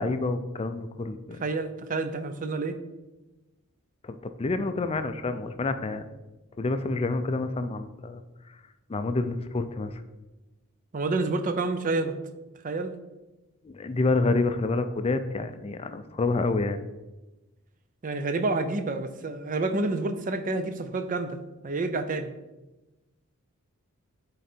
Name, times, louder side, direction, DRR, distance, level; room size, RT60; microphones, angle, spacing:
voice 1, 0.0-1.4 4.0-6.1 6.6-8.2 8.9-10.0 13.6-16.8, left 3 dB, 25° left, 10 dB, 0.4 m, -28 dB
voice 2, 1.4-2.8 10.9-12.2 12.6-13.0 18.0-21.4 21.6-22.3, right 3 dB, 40° right, 9 dB, 0.5 m, -28 dB
8.2 x 3.8 x 4.4 m, 1.1 s
head